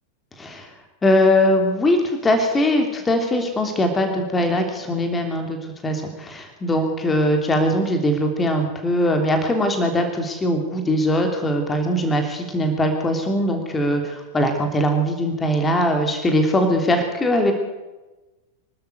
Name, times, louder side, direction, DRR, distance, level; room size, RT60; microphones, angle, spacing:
voice 1, 0.4-0.7 1.0-17.5, left 1 dB, 15° left, 4 dB, 3.1 m, -21 dB
25.5 x 12.5 x 8.1 m, 1.1 s
figure-of-eight pair, 90°, 0 cm